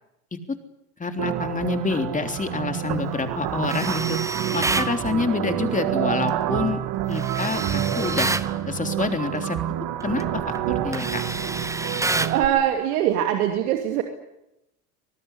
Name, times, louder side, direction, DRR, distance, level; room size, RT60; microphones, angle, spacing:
voice 1, 1.0-4.2 4.5-6.8 7.1-8.3 8.7-9.6 10.0-10.4 10.7-11.2, left 4 dB, 15° left, 6 dB, 3.5 m, -27 dB
sound 1, 1.2-12.5, right 11 dB, 50° right, 3.1 m, -28 dB
Tools, 3.7-4.9 7.1-8.5 10.0-10.2 10.5-12.4, right 2 dB, 5° right, 1.1 m, -28 dB
voice 2, 12.2-14.0, right 11 dB, 70° right, 4 dB, 2.8 m, -22 dB
25.5 x 19.0 x 9.9 m, 0.87 s
hypercardioid pair, 85°, 44 cm